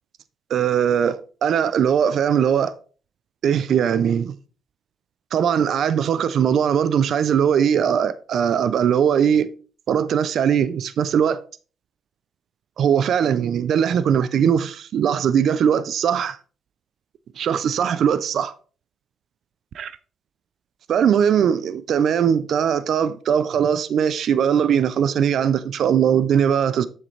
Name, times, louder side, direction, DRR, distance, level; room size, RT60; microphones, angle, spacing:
voice 1, 0.5-2.7 3.4-4.4 5.3-9.5 9.9-11.4 12.8-16.4 17.4-18.5 19.8-19.9 20.9-26.8, right 8 dB, 65° right, 0.5 m, -20 dB
7.6 x 6.5 x 3.3 m
cardioid pair, 90°, 0 cm